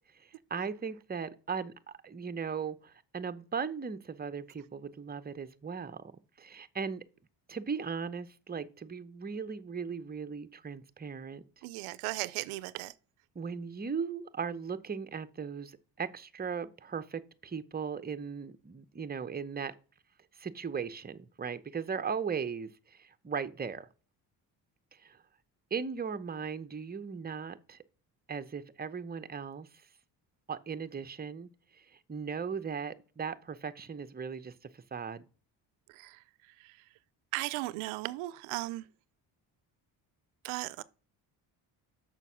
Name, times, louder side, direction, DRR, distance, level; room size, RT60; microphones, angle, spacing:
voice 1, 0.1-1.7 2.0-6.0 6.4-7.0 7.5-11.4 13.3-19.7 20.4-23.9 24.9-25.2 25.7-27.8 28.3-29.7 30.5-35.3, right 6 dB, 20° right, 0.7 m, -38 dB
voice 2, 11.6-12.9 35.9-36.2 36.6-36.8 37.3-38.9 40.4-40.8, right 19 dB, 85° right, 0.6 m, -36 dB
6.7 x 5.9 x 6.2 m
supercardioid pair, 60°, 48 cm